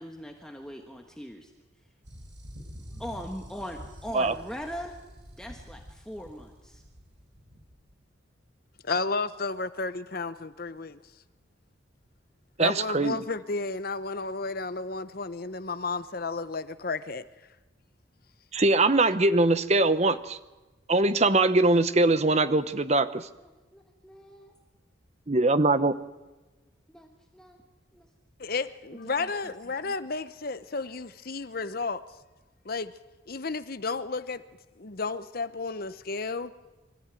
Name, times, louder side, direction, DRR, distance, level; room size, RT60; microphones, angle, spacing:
voice 1, 0.0-1.5 3.0-5.0 5.4-6.8 23.4-24.5 26.9-27.6 27.9-28.1 29.0-29.3 29.8-29.9, equal, 5° left, 1.3 m, -41 dB
sound 1, 2.0-7.9, equal, 60° right, 5.6 m, -47 dB
voice 2, 8.8-11.0 12.6-17.2 28.4-32.0 32.6-32.9 33.3-34.4 34.8-36.5, left 4 dB, 45° left, 0.8 m, -32 dB
voice 3, 12.6-13.2 18.5-20.4 20.9-23.3 25.3-25.9, right 2 dB, 35° right, 0.8 m, -22 dB
24.5 x 14.0 x 9.1 m
head